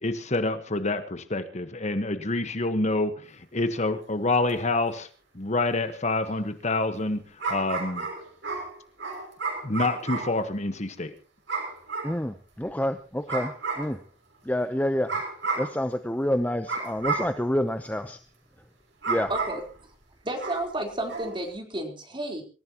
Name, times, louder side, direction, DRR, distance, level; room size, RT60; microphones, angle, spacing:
voice 1, 0.0-5.1 5.3-8.1 9.6-11.1, left 2 dB, 40° left, 9 dB, 1.4 m, -27 dB
sound 1, 4.5-4.6 7.4-10.4 11.5-12.2 13.3-13.9 15.1-15.8 16.7-17.4 19.0-19.7 20.4-20.7 21.1-21.4, right 4 dB, 85° right, 6.5 m, -31 dB
voice 2, 12.0-13.5 13.8-14.0 14.5-15.2 15.6-18.2 19.1-19.3, left 1 dB, 10° left, 8 dB, 0.8 m, -28 dB
voice 3, 19.3-19.6 20.2-22.4, right 1 dB, 25° right, 2 dB, 4.1 m, -31 dB
26.0 x 15.0 x 3.0 m, 0.35 s
head